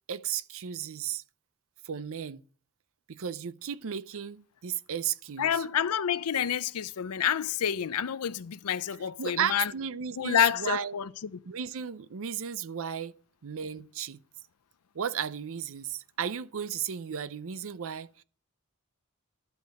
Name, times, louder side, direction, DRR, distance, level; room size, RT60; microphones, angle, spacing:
voice 1, 0.1-1.2 1.8-2.4 3.1-5.7 9.2-11.0 11.5-13.1 13.4-14.2 14.9-18.2, right 8 dB, 65° right, 0.5 m, -34 dB
voice 2, 5.4-9.7 10.2-11.4, left 9 dB, 85° left, 0.5 m, -28 dB
12.0 x 5.2 x 7.7 m
head